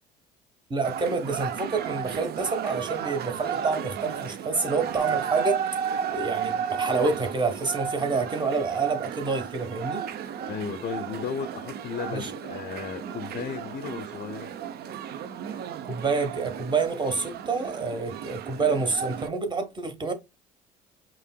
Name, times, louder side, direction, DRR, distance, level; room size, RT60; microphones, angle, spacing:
voice 1, 0.7-5.6 6.1-10.0 12.1-12.3 15.9-20.1, right 4 dB, 25° right, 1.2 m, -28 dB
sound 1, 0.8-19.3, right 8 dB, 55° right, 0.5 m, -34 dB
voice 2, 10.5-14.5, left 6 dB, 50° left, 0.5 m, -35 dB
5.3 x 2.9 x 2.2 m
supercardioid pair, 70°, 19 cm